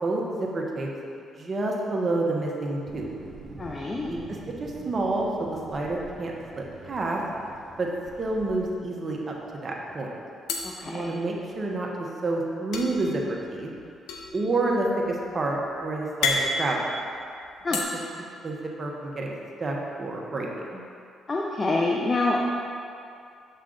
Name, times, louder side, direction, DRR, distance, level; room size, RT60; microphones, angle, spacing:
voice 1, 0.0-0.9 1.4-3.0 4.1-7.2 7.8-7.9 8.2-10.1 10.8-11.9 12.2-13.7 14.3-16.9 18.2-19.3 19.6-20.8, right 2 dB, 35° right, -1 dB, 1.1 m, -29 dB
Thunder, 2.8-8.8, right 3 dB, 60° right, 0.9 m, -45 dB
voice 2, 3.6-4.1 10.6-11.0 17.6-17.8 21.3-22.4, left 2 dB, 30° left, -2 dB, 0.6 m, -26 dB
sound 1, 7.2-8.1 8.4-8.5 8.8-9.5 10.5-11.7 12.7-17.8, left 3 dB, 85° left, 0.7 m, -32 dB
7.5 x 5.5 x 3.8 m, 2.5 s
cardioid pair, 90°, 0 cm